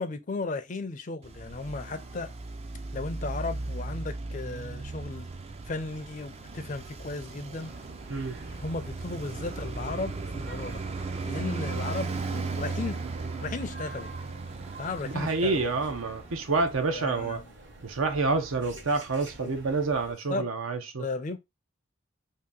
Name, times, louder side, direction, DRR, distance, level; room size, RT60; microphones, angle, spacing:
voice 1, 0.0-2.3 2.9-5.3 5.7-7.7 8.6-10.8 11.3-13.0 13.4-14.1 14.8-15.7 16.9-17.4 19.4-19.6 20.3-20.5 21.0-21.4, left 3 dB, 35° left, 0.4 m, -35 dB
Traffic noise roadway noise, 1.2-16.7, right 3 dB, 30° right, 0.3 m, -37 dB
sound 1, 7.5-20.1, right 2 dB, 60° right, 1.1 m, -49 dB
voice 2, 15.1-17.4 17.8-21.0, right 3 dB, 75° right, 0.7 m, -28 dB
2.8 x 2.6 x 3.7 m
head